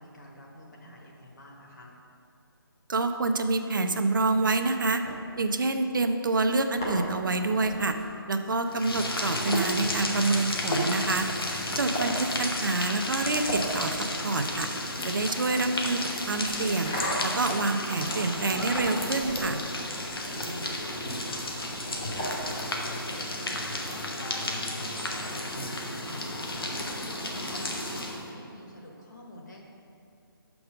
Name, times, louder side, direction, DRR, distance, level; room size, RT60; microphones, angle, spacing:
voice 1, 0.0-1.9 20.3-29.6, left 1 dB, 50° left, -1 dB, 1.5 m, -46 dB
voice 2, 2.9-5.0 5.4-8.0 8.3-11.3 11.8-14.7 15.0-16.0 16.3-16.9 17.2-19.6, right 3 dB, 60° right, 7 dB, 0.5 m, -27 dB
sound 1, 4.3-5.9 6.5-22.9, equal, 10° left, 0.5 m, -39 dB
sound 2, 8.7-28.3, left 1 dB, 70° left, 1.2 m, -33 dB
6.1 x 6.0 x 5.0 m, 2.5 s
hypercardioid pair, 175°, 12 cm